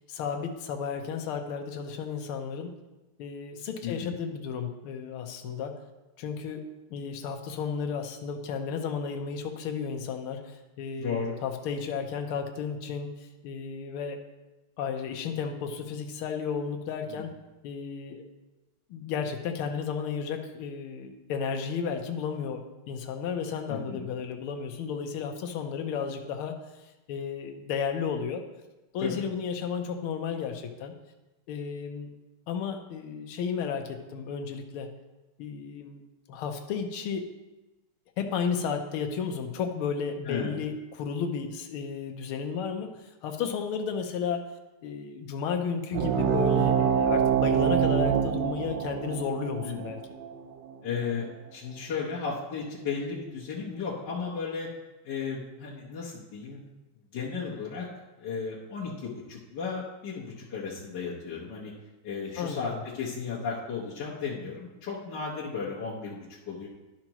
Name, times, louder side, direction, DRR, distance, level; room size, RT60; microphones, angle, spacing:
voice 1, 0.1-2.7 3.2-5.8 6.2-6.6 6.9-13.1 13.4-14.2 14.8-17.3 17.6-18.2 18.9-26.6 27.1-28.4 28.9-30.9 31.5-32.1 32.5-34.9 35.4-36.0 36.3-37.3 38.2-42.9 43.2-44.4 44.8-50.0 62.4-62.8, left 6 dB, 80° left, 4 dB, 1.6 m, -33 dB
voice 2, 3.8-4.2 11.0-11.3 17.1-17.2 23.7-24.1 29.0-29.1 40.2-40.6 49.6-49.8 50.8-54.7 55.0-56.6 57.1-57.9 58.2-61.7 62.0-66.7, left 5 dB, 55° left, -7 dB, 1.6 m, -34 dB
sound 1, 45.9-51.0, right 8 dB, 70° right, 1.1 m, -26 dB
11.5 x 5.9 x 2.9 m, 1.1 s
omnidirectional pair, 2.4 m